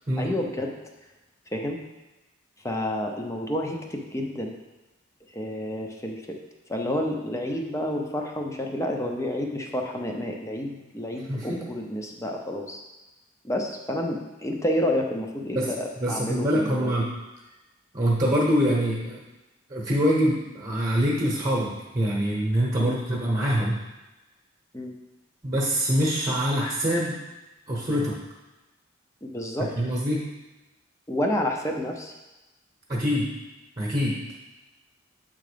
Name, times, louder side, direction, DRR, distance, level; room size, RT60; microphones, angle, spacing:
voice 1, 0.2-0.8 1.5-1.8 2.6-4.5 5.3-6.4 6.7-12.8 13.4-17.0 22.8-23.0 24.7-24.9 29.2-29.7 31.1-32.1, left 1 dB, 15° left, 1 dB, 0.6 m, -29 dB
voice 2, 11.3-11.6 15.5-15.7 16.0-17.1 17.9-19.2 19.7-23.8 25.4-27.1 27.7-28.2 29.8-30.3 32.9-33.3 33.8-34.2, equal, 25° right, -4 dB, 1.1 m, -24 dB
7.6 x 3.8 x 5.0 m, 1.1 s
head